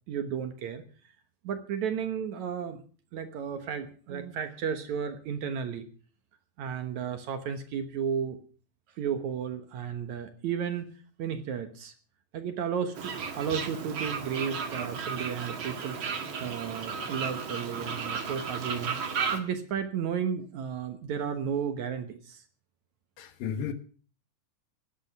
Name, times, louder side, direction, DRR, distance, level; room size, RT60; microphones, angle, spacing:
voice 1, 0.1-0.8 1.4-2.8 3.1-5.9 6.6-8.4 9.0-10.9 11.2-11.9 12.3-16.0 16.4-22.4, right 7 dB, 60° right, 8 dB, 2.2 m, -33 dB
Fowl, 13.0-19.4, right 5 dB, 45° right, 1.9 m, -34 dB
voice 2, 23.2-23.7, left 7 dB, 75° left, 9 dB, 3.1 m, -33 dB
18.0 x 10.5 x 6.0 m, 0.41 s
omnidirectional pair, 4.2 m